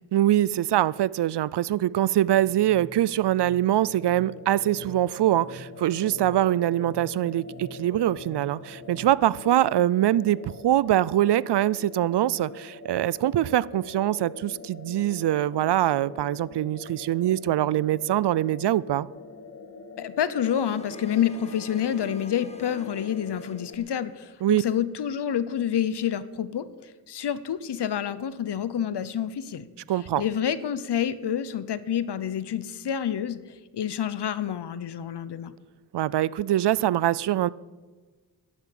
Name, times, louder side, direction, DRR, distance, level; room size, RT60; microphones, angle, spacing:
voice 1, 0.1-19.1 24.4-24.6 29.9-30.2 35.9-37.5, right 13 dB, 85° right, 21 dB, 0.5 m, -23 dB
sound 1, 2.3-9.1, right 1 dB, 15° right, 3.0 m, -48 dB
sound 2, 3.8-23.7, left 3 dB, 35° left, 1.3 m, -44 dB
voice 2, 20.0-29.7 30.2-33.4 33.7-35.5, left 9 dB, 80° left, 15 dB, 0.8 m, -28 dB
sound 3, 20.4-24.4, left 2 dB, 15° left, 1.4 m, -49 dB
11.5 x 11.0 x 8.6 m, 1.4 s
wide cardioid pair, 100°, 40 cm